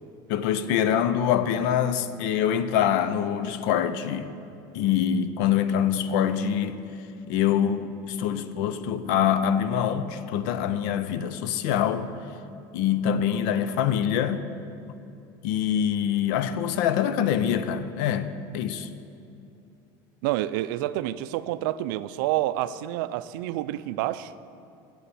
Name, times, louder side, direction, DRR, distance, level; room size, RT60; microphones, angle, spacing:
voice 1, 0.3-4.3 4.7-6.8 7.3-12.1 12.7-14.5 15.4-18.9, left 9 dB, 75° left, 12 dB, 0.5 m, -25 dB
voice 2, 20.2-24.3, right 14 dB, 80° right, 15 dB, 0.4 m, -28 dB
8.0 x 6.9 x 7.5 m, 2.6 s
cardioid pair, 150°, 11 cm